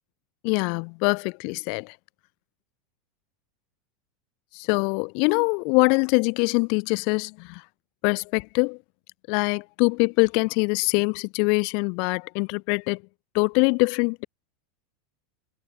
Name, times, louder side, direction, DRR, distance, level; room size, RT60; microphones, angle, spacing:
voice 1, 0.4-1.9 4.5-7.6 8.0-8.8 9.3-13.0 13.3-14.3, left 37 dB, 55° left, 1.5 m, -23 dB
figure-of-eight pair, 85°, 0 cm